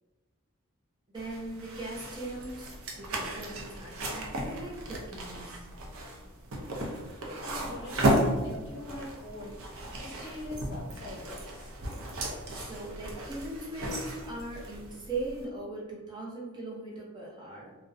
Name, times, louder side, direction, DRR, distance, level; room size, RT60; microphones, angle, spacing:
voice 1, 1.1-5.7 12.6-17.7, right 2 dB, 20° right, -4 dB, 0.4 m, -40 dB
sound 1, 1.1-15.4, right 1 dB, 80° right, 0.5 m, -34 dB
voice 2, 7.4-9.6 10.0-11.7, left 1 dB, 55° left, -2 dB, 0.5 m, -42 dB
2.6 x 2.0 x 2.3 m, 1.2 s
head